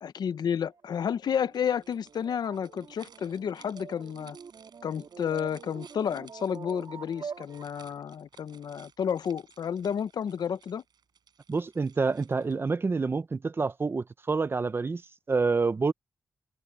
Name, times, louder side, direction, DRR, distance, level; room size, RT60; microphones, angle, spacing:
voice 1, 0.0-4.4 4.8-10.8, left 8 dB, 80° left, 0.6 m, -31 dB
sound 1, 0.7-8.0, right 6 dB, 65° right, 2.5 m, -46 dB
sound 2, 1.5-12.7, right 7 dB, 85° right, 6.3 m, -59 dB
voice 2, 11.5-15.0 15.3-15.9, right 4 dB, 35° right, 0.8 m, -27 dB
wide cardioid pair, 125°, 7 cm